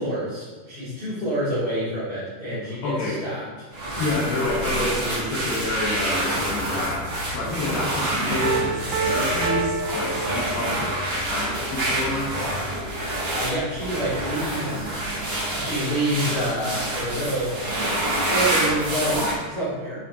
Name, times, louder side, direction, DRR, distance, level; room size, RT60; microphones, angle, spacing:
voice 1, 0.0-3.5 13.1-14.9 15.5-17.5 18.3-20.0, right 1 dB, 20° right, -13 dB, 1.5 m, -27 dB
voice 2, 2.8-3.2 4.0-11.0 11.3-12.5, left 2 dB, 75° left, -6 dB, 2.7 m, -28 dB
sound 1, 3.7-19.3, right 1 dB, 60° right, 1.1 m, -27 dB
sound 2, 6.4-13.1, left 1 dB, 35° left, 0.6 m, -38 dB
Piano, 8.4-11.0, right 5 dB, 75° right, 2.1 m, -28 dB
11.0 x 4.2 x 2.8 m, 1.4 s
omnidirectional pair, 4.2 m